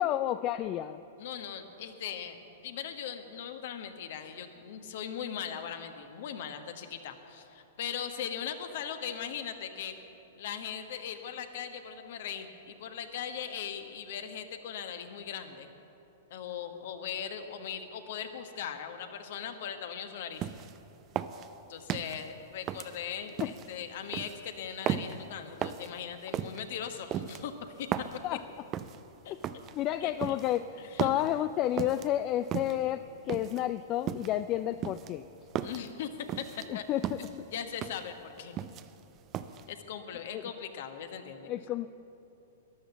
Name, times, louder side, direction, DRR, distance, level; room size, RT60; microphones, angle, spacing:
voice 1, 0.0-1.0 23.4-23.5 28.2-28.4 29.3-29.4 29.7-35.3 36.7-37.3 40.3-40.4 41.5-41.9, left 12 dB, 35° left, 12 dB, 0.3 m, -31 dB
voice 2, 1.2-2.4 2.6-9.9 10.4-15.7 16.3-20.4 21.7-27.5 27.8-27.9 29.2-29.4 30.0-30.3 30.8-31.2 35.4-36.1 36.4-36.5 36.7-36.8 37.2-38.5 39.7-41.5, left 8 dB, 55° left, 7 dB, 1.3 m, -39 dB
sound 1, 20.4-20.8 21.2-22.2 22.7-23.7 24.1-24.4 24.9-25.2 25.6-25.9 26.3-26.6 27.1-28.2 28.7-29.0 29.4-29.7 30.2-30.6 31.0-31.3 31.8-32.1 32.5-32.9 33.3-33.6 34.1-34.4 34.8-35.9 36.3-36.7 37.0-37.3 37.8-38.1 38.4-39.0 39.3-39.6, right 10 dB, 30° right, 0.5 m, -35 dB
13.5 x 11.0 x 7.2 m, 2.9 s
figure-of-eight pair, 105°, 0 cm